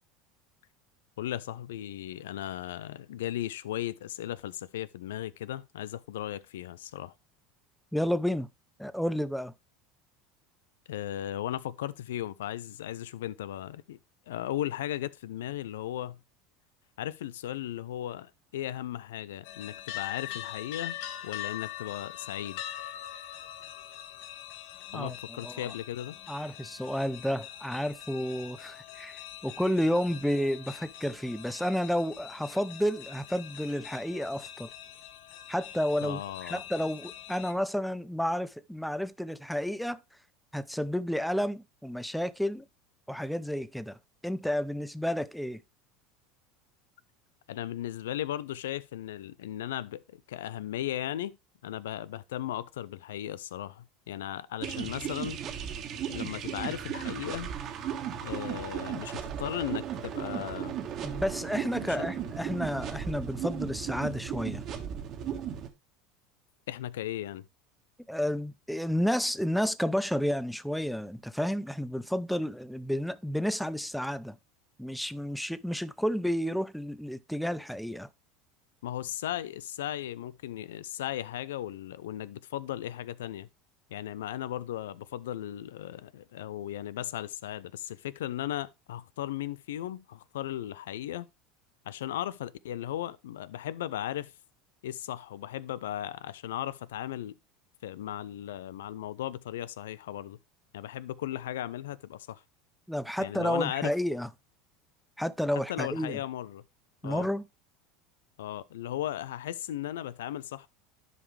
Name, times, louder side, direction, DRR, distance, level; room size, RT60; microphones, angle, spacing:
voice 1, 1.2-7.1 10.9-14.0 14.3-16.2 17.0-21.0 21.2-22.6 24.9-26.2 36.0-36.6 47.5-51.3 51.6-55.4 56.1-57.5 58.2-60.8 61.9-62.0 66.7-67.5 78.8-83.5 83.9-91.3 91.9-94.3 94.8-97.4 97.8-100.4 100.7-102.4 103.2-103.9 105.5-106.6 107.0-107.3 108.4-110.7, left 12 dB, 80° left, 0.4 m, -36 dB
voice 2, 7.9-8.5 8.8-9.5 24.9-25.7 26.3-34.7 35.5-40.0 40.5-42.6 43.1-44.0 44.2-45.6 61.0-64.6 68.1-74.4 74.8-78.1 102.9-104.3 105.2-106.2 107.0-107.4, equal, ahead, 0.5 m, -31 dB
sound 1, 19.4-37.5, left 12 dB, 65° left, 0.9 m, -43 dB
sound 2, 54.6-65.7, right 9 dB, 50° right, 1.5 m, -36 dB
11.0 x 5.1 x 3.2 m
hypercardioid pair, 90°, 0 cm